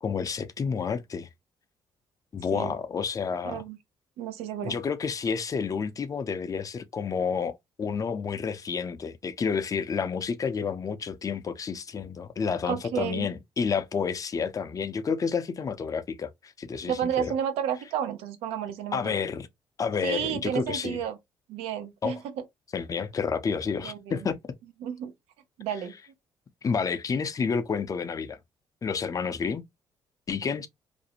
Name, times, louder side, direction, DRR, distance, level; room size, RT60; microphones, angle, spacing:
voice 1, 0.0-1.3 2.3-3.6 4.6-17.3 18.9-19.5 19.8-21.0 22.0-22.2 22.7-24.4 26.6-28.4 28.8-29.6 30.3-30.7, left 6 dB, 35° left, 0.4 m, -30 dB
voice 2, 3.4-3.8 4.2-4.8 12.7-13.3 16.9-19.1 20.0-21.2 21.5-22.4 23.8-24.2 24.8-25.1 25.6-25.9, right 9 dB, 85° right, 0.5 m, -31 dB
2.5 x 2.0 x 2.8 m
supercardioid pair, 70°, 10 cm